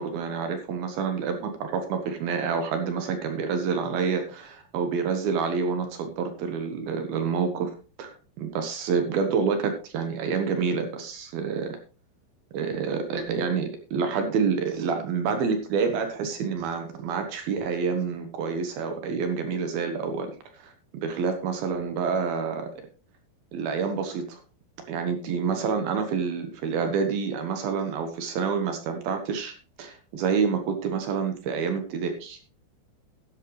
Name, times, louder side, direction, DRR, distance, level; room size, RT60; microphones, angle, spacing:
voice 1, 0.0-8.1 8.4-11.8 12.5-20.3 20.6-20.7 21.0-22.7 23.5-24.4 24.9-32.4, right 5 dB, 65° right, 6 dB, 2.6 m, -28 dB
13.0 x 10.5 x 3.2 m, 0.35 s
omnidirectional pair, 5.5 m